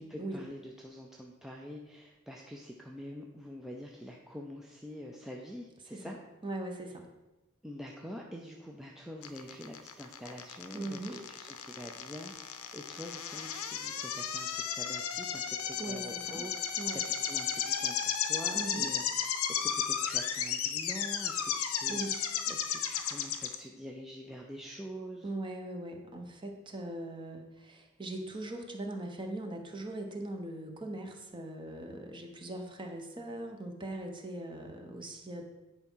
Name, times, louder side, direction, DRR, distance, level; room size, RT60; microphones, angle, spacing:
voice 1, 0.0-6.2 7.6-25.3, equal, ahead, -1 dB, 0.5 m, -46 dB
voice 2, 6.4-7.0 10.7-11.2 15.8-16.4 16.8-17.0 18.6-18.9 21.9-22.2 25.2-35.4, right 1 dB, 20° right, 3 dB, 1.0 m, -40 dB
sound 1, 9.2-23.5, left 8 dB, 80° left, 0.7 m, -34 dB
9.6 x 4.6 x 5.6 m, 1.1 s
head